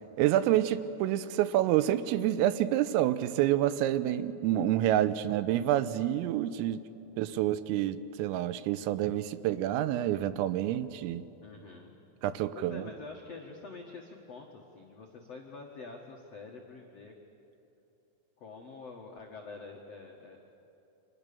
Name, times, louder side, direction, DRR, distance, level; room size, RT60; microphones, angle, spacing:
voice 1, 0.2-6.8 7.2-11.2 12.2-12.8, right 12 dB, 85° right, 14 dB, 3.4 m, -28 dB
voice 2, 11.4-12.0 12.5-17.1 18.4-20.4, left 4 dB, 75° left, 0 dB, 1.5 m, -46 dB
30.0 x 25.5 x 7.0 m, 2.9 s
omnidirectional pair, 5.9 m